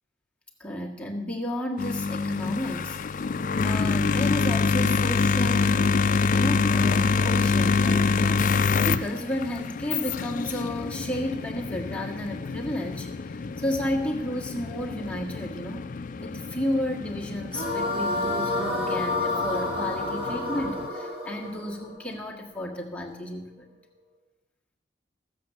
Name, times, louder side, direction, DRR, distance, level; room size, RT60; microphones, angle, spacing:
voice 1, 0.6-3.1 3.6-6.0 6.3-15.9 16.2-23.7, left 1 dB, 5° left, -1 dB, 1.6 m, -32 dB
sound 1, 1.8-20.9, left 4 dB, 45° left, 0.4 m, -26 dB
sound 2, 17.5-22.7, left 2 dB, 55° right, 3.2 m, -29 dB
14.5 x 7.6 x 7.3 m, 1.0 s
head